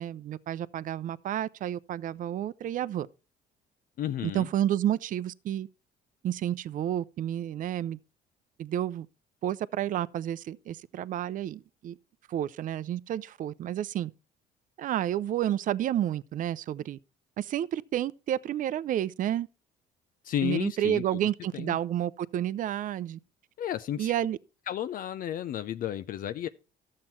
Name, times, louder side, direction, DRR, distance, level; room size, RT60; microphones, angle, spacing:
voice 1, 0.0-3.1 4.2-5.7 6.2-8.0 8.6-9.1 9.4-11.9 12.3-14.1 14.8-17.0 17.4-19.5 20.4-23.2 24.0-24.4, right 11 dB, 50° right, 0.5 m, -30 dB
voice 2, 4.0-4.5 20.2-21.0 21.5-21.8 23.6-24.1 24.7-26.5, left 11 dB, 55° left, 0.6 m, -32 dB
12.5 x 7.5 x 4.3 m
cardioid pair, 110°, 17 cm